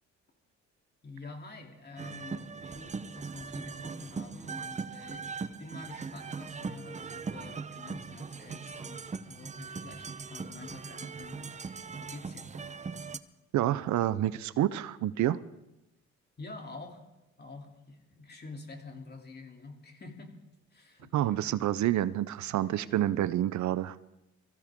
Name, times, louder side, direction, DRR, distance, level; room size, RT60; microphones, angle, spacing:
voice 1, 1.0-12.5 16.4-17.0 17.4-20.4 20.7-21.6 22.5-22.6, left 3 dB, 35° left, 2 dB, 3.0 m, -48 dB
sound 1, 2.0-13.2, right 5 dB, 25° right, 0.7 m, -40 dB
voice 2, 13.5-15.4 21.1-24.0, right 13 dB, 70° right, 16 dB, 0.6 m, -28 dB
23.5 x 15.0 x 3.6 m, 0.94 s
cardioid pair, 90°, 30 cm